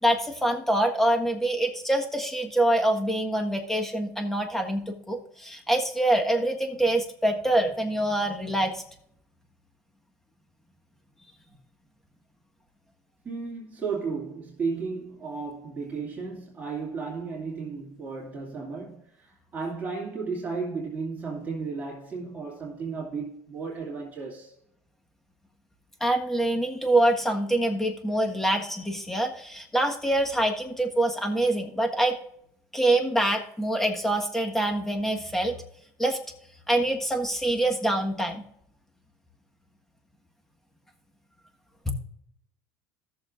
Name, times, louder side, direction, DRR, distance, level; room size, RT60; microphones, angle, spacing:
voice 1, 0.0-8.8 26.0-32.2 32.7-35.5 36.0-36.2 36.7-38.4 41.8-41.9, right 1 dB, 5° left, 1.5 m, -25 dB
voice 2, 13.2-24.5, right 4 dB, 20° right, 2.6 m, -34 dB
17.0 x 6.8 x 2.5 m
supercardioid pair, 125°, 7 cm